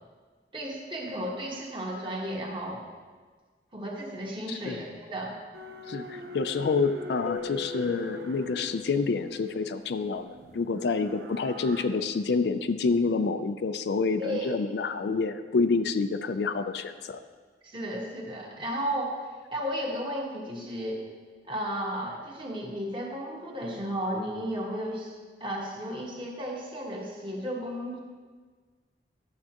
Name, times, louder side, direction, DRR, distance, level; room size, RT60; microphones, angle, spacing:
voice 1, 0.5-2.8 3.7-5.3 14.2-14.5 17.6-19.2 19.5-21.0 21.5-28.0, equal, 25° right, -2 dB, 1.3 m, -34 dB
voice 2, 4.5-4.8 5.9-17.2, left 4 dB, 70° left, 10 dB, 0.4 m, -28 dB
sound 1, 5.5-11.8, equal, 70° right, 0.8 m, -43 dB
Keyboard (musical), 7.3-9.8, left 7 dB, 40° left, 0.7 m, -41 dB
12.0 x 7.6 x 2.9 m, 1.5 s
head